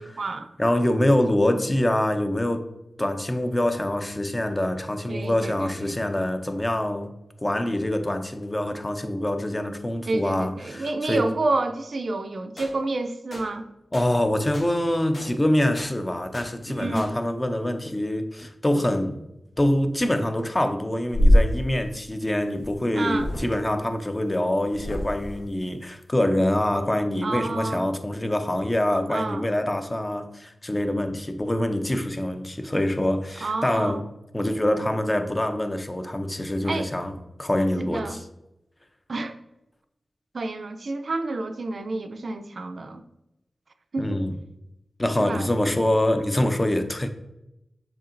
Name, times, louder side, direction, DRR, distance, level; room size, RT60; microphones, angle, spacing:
voice 1, 0.0-0.5 5.1-6.1 10.0-13.7 16.7-17.2 22.9-23.3 27.2-27.8 29.1-29.5 33.4-34.0 36.6-36.9 37.8-38.2 39.1-39.4 40.3-43.0 43.9-44.2 45.2-45.5, right 2 dB, 70° right, 0.4 m, -29 dB
voice 2, 0.6-2.7 3.0-7.1 7.4-11.3 13.9-19.2 19.6-34.0 34.3-37.1 37.4-38.2 44.0-44.4 45.0-47.1, left 1 dB, 25° left, 0.5 m, -25 dB
sound 1, 12.6-12.7 13.3-13.5 13.9-14.1 14.5-14.7 15.1-15.3 15.8-15.9 16.3-16.5 17.0-17.1, left 1 dB, 70° left, 1.3 m, -39 dB
sound 2, 21.1-21.5 22.6-22.7 23.1-23.5 24.7-25.4, equal, 90° left, 1.0 m, -21 dB
6.9 x 2.8 x 2.5 m
cardioid pair, 50°, 0 cm